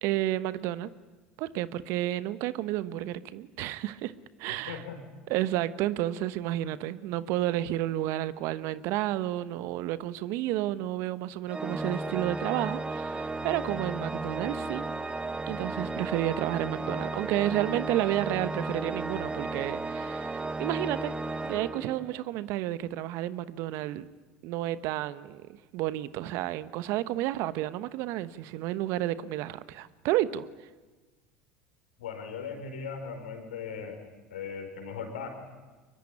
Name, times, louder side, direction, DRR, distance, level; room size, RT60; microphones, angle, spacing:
voice 1, 0.0-0.9 1.4-4.1 4.4-4.8 5.3-14.9 15.5-21.1 21.4-24.1 24.4-30.5, right 14 dB, 60° right, 15 dB, 1.0 m, -31 dB
voice 2, 4.7-5.0 32.0-34.0 34.3-35.3, left 6 dB, 80° left, 5 dB, 5.1 m, -38 dB
Organ, 11.5-22.4, right 3 dB, 20° right, 1.2 m, -34 dB
23.5 x 22.5 x 10.0 m, 1.3 s
hypercardioid pair, 75°, 5 cm